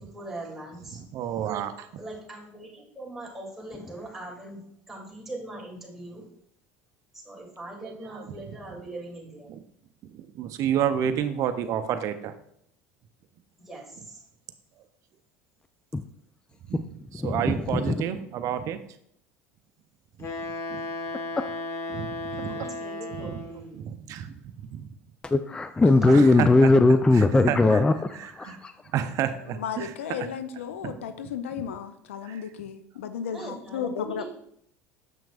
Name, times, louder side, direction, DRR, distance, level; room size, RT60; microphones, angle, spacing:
voice 1, 0.0-1.0 2.0-4.6 4.9-6.3 7.1-9.5 13.6-14.2 22.3-23.8 33.3-34.3, right 1 dB, 5° right, -4 dB, 2.6 m, -41 dB
voice 2, 1.1-2.0 7.8-8.3 9.5-9.6 10.1-12.3 16.7-18.8 20.2-20.3 20.7-20.8 21.9-22.7 23.2-23.4 24.1-24.3 24.7-24.9 26.1-26.7 27.1-27.8 28.1-28.6 28.9-29.9 30.8-30.9 32.3-32.4, right 9 dB, 50° right, 9 dB, 0.5 m, -30 dB
voice 3, 17.2-18.0 25.2-28.7, left 2 dB, 15° left, 10 dB, 0.3 m, -20 dB
Wind instrument woodwind instrument, 20.2-23.7, left 2 dB, 40° left, 1.4 m, -34 dB
voice 4, 29.5-34.2, left 8 dB, 85° left, 11 dB, 0.4 m, -34 dB
6.9 x 5.9 x 2.4 m, 0.69 s
hypercardioid pair, 75°, 7 cm